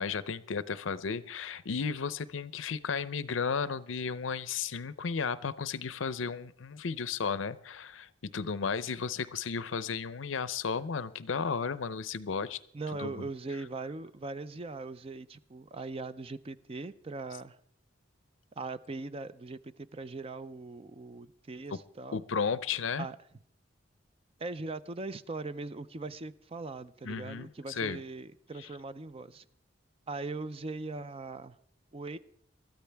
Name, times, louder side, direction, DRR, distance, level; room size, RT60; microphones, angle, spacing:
voice 1, 0.0-12.6 13.0-13.3 22.1-23.1 27.0-28.0, left 5 dB, 80° left, 0.6 m, -34 dB
voice 2, 12.7-17.6 18.6-22.2 23.0-23.2 24.4-29.4 30.1-31.6 31.9-32.2, right 3 dB, 30° right, 0.5 m, -40 dB
22.0 x 13.5 x 3.4 m
head